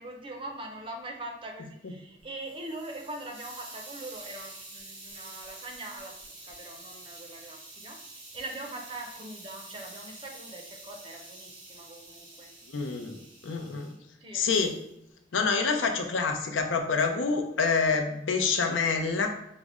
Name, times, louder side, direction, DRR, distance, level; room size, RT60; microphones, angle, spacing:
voice 1, 0.0-12.5 14.2-14.4, right 1 dB, 30° right, 2 dB, 0.5 m, -42 dB
Hiss, 2.2-13.9 14.5-14.9, right 2 dB, 90° right, 1.4 m, -47 dB
voice 2, 12.7-13.9 14.3-14.8 15.3-19.3, left 4 dB, 90° left, 5 dB, 0.5 m, -27 dB
4.8 x 2.1 x 3.5 m, 0.81 s
head